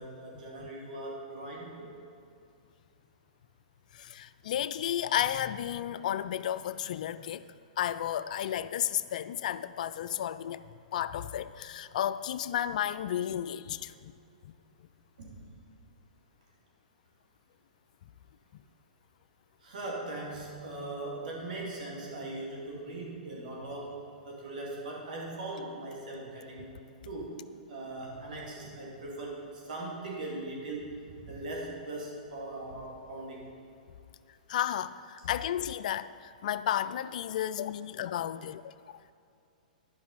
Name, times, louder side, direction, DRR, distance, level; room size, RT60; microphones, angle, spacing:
voice 1, 0.0-1.9 15.2-15.4 19.6-26.7 27.0-27.4 27.7-33.5, right 2 dB, 70° right, -2 dB, 2.2 m, -40 dB
voice 2, 3.9-7.5 7.8-10.6 10.9-14.1 34.5-38.7, left 11 dB, 65° left, 14 dB, 0.3 m, -33 dB
11.5 x 5.4 x 4.1 m, 2.5 s
hypercardioid pair, 125°, 5 cm